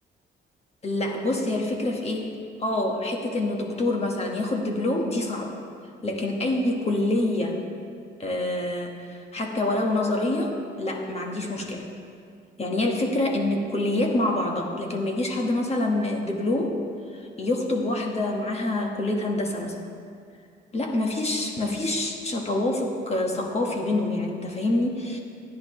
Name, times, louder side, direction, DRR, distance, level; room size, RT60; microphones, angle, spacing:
voice 1, 0.8-2.3 2.6-5.5 6.0-7.6 8.2-11.8 12.6-16.8 17.1-19.8 20.7-25.2, left 2 dB, 30° left, 1 dB, 1.5 m, -26 dB
14.0 x 10.0 x 3.2 m, 2.4 s
cardioid pair, 90°, 20 cm